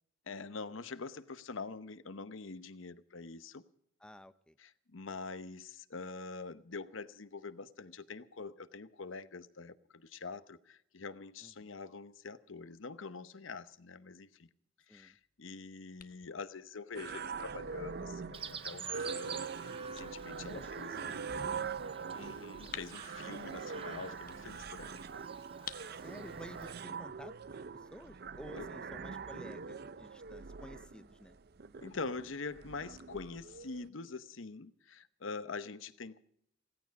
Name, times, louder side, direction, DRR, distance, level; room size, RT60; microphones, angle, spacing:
voice 1, 0.3-3.6 4.6-14.5 14.9-21.4 22.1-25.0 28.6-28.7 31.8-36.2, left 4 dB, 90° left, 0.9 m, -45 dB
voice 2, 4.0-4.6 11.4-11.7 14.9-15.2 20.1-20.7 21.0-21.7 25.9-27.3 27.7-31.3, equal, 5° left, 0.5 m, -52 dB
sound 1, 15.1-28.6, left 8 dB, 45° left, 1.0 m, -56 dB
sound 2, 16.9-33.9, right 5 dB, 55° right, 0.6 m, -43 dB
Chirp tweet, 18.3-26.8, right 6 dB, 30° right, 0.8 m, -49 dB
17.0 x 15.5 x 5.3 m
head